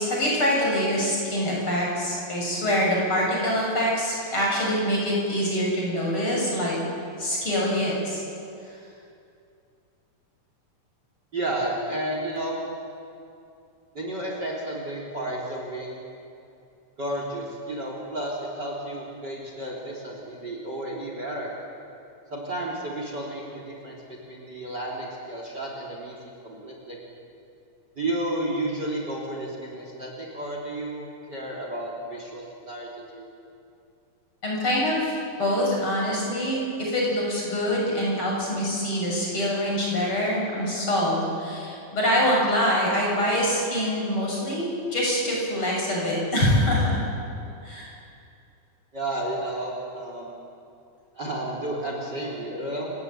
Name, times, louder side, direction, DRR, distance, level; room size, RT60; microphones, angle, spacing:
voice 1, 0.0-6.7 7.2-8.2 34.4-47.0 47.6-47.9, equal, 40° left, -3 dB, 8.0 m, -25 dB
voice 2, 11.3-12.6 13.9-16.0 17.0-21.5 22.3-27.0 28.0-33.2 47.4-47.6 48.9-50.3 51.1-52.9, right 1 dB, 30° right, -1 dB, 4.2 m, -32 dB
30.0 x 16.0 x 9.3 m, 2.5 s
omnidirectional pair, 3.7 m